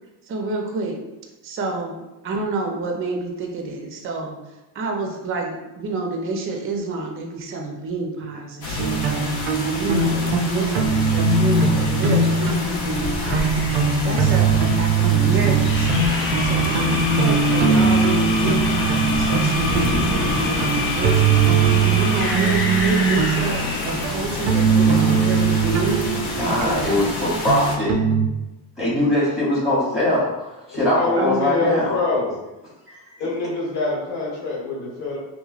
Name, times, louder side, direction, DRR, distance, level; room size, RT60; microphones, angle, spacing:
voice 1, 0.3-1.0 1.4-4.4 4.7-9.3 9.6-21.4 21.9-26.1 26.4-27.4 31.2-31.7, right 3 dB, 30° right, 1 dB, 0.5 m, -29 dB
sound 1, 8.6-27.8, left 2 dB, 60° left, 0.7 m, -28 dB
sound 2, 8.8-28.3, right 5 dB, 85° right, 0.6 m, -21 dB
sound 3, 15.6-24.1, left 2 dB, 30° left, 0.4 m, -27 dB
voice 2, 26.2-28.0 28.8-30.3 30.7-32.0 33.1-33.2, left 1 dB, ahead, -8 dB, 0.8 m, -21 dB
voice 3, 30.9-32.4 33.2-35.2, left 3 dB, 85° left, -4 dB, 1.2 m, -25 dB
3.0 x 2.1 x 2.4 m, 1.0 s
supercardioid pair, 90°, 46 cm